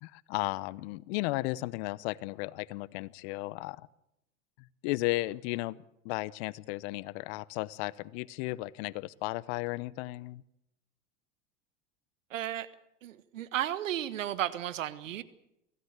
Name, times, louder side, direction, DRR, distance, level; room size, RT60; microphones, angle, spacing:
voice 1, 0.0-3.9 4.6-5.8 6.0-10.4, left 20 dB, 60° left, 21 dB, 0.9 m, -34 dB
voice 2, 12.3-12.7 13.0-15.2, right 12 dB, 85° right, 14 dB, 1.5 m, -34 dB
24.0 x 16.5 x 8.2 m, 0.84 s
hypercardioid pair, 100°, 37 cm